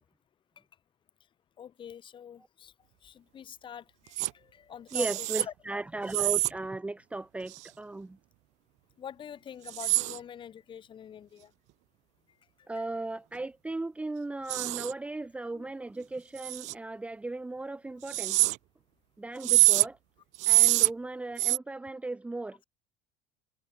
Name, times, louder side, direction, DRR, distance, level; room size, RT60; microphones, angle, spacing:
voice 1, 1.6-2.7 3.0-5.5 9.0-11.5 12.6-12.8 15.5-15.7, left 9 dB, 35° left, 3.7 m, -46 dB
sound 1, 4.2-4.3 4.9-5.5 6.1-6.5 7.5-7.7 9.7-10.2 14.5-14.9 16.4-16.7 18.1-18.6 19.4-19.9 20.3-20.9 21.4-21.6, right 20 dB, 60° right, 0.9 m, -25 dB
voice 2, 4.9-8.2 12.7-18.4 19.2-20.0 20.5-22.6, right 2 dB, 10° right, 1.0 m, -36 dB
supercardioid pair, 105°, 14 cm